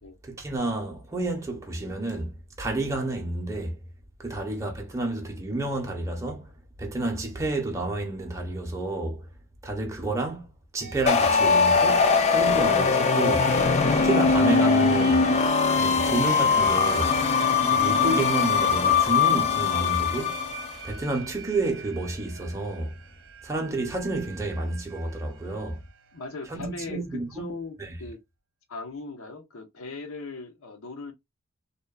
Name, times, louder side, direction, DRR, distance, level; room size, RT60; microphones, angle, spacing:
voice 1, 0.2-3.8 4.2-6.5 6.8-9.3 9.6-13.5 13.9-15.3 15.7-17.2 17.7-20.4 20.8-23.0 23.4-25.8 26.5-27.5 27.8-28.0, right 2 dB, 15° right, 0.6 m, -30 dB
sound 1, 10.8-26.4, right 4 dB, 65° right, 0.6 m, -42 dB
sound 2, 11.1-20.7, left 5 dB, 30° left, 0.3 m, -21 dB
voice 2, 26.1-27.0 27.3-28.2 28.7-31.1, left 3 dB, 85° left, 0.7 m, -38 dB
2.8 x 2.1 x 2.2 m
head